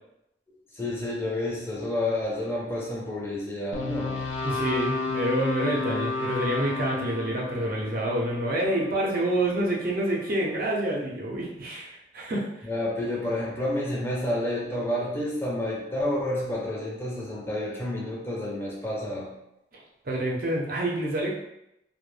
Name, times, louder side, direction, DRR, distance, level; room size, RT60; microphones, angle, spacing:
voice 1, 0.7-4.2 12.6-19.3, left 1 dB, 15° left, -4 dB, 0.6 m, -29 dB
sound 1, 3.7-10.0, left 3 dB, 90° left, 0.4 m, -32 dB
voice 2, 4.4-12.4 20.0-21.4, right 1 dB, 55° right, -2 dB, 0.6 m, -27 dB
2.1 x 2.1 x 3.1 m, 0.83 s
head